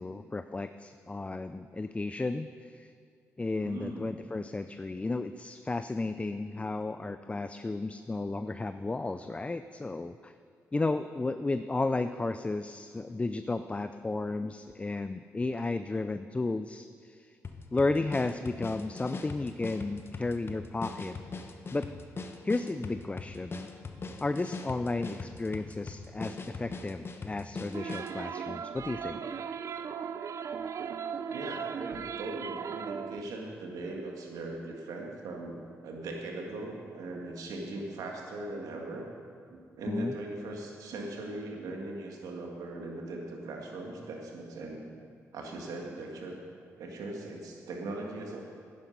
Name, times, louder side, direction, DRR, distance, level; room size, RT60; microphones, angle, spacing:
voice 1, 0.0-2.9 3.4-10.3 10.7-17.3 17.7-21.2 21.7-21.9 22.4-23.7 24.2-29.2 39.8-40.1, left 3 dB, 20° left, 10 dB, 0.4 m, -33 dB
voice 2, 3.6-4.1 31.3-39.0 39.5-44.8 45.3-46.4 46.8-48.4, right 2 dB, 75° right, 1 dB, 1.8 m, -39 dB
sound 1, 17.4-28.2, left 3 dB, 40° left, 1.0 m, -41 dB
sound 2, 27.7-33.2, right 7 dB, 55° right, 0.5 m, -37 dB
10.5 x 9.9 x 5.3 m, 2.2 s
supercardioid pair, 55°, 6 cm